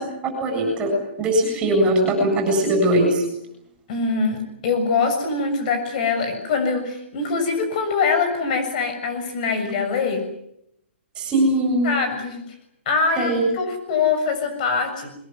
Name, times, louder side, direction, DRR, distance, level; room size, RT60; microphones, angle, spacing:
voice 1, 0.4-3.2 11.2-11.9 13.2-13.4, right 1 dB, 15° right, 3 dB, 7.9 m, -20 dB
voice 2, 3.9-10.2 11.8-12.4 12.8-15.1, left 4 dB, 40° left, 7 dB, 6.6 m, -23 dB
23.0 x 21.5 x 9.5 m, 0.77 s
hypercardioid pair, 165°, 7 cm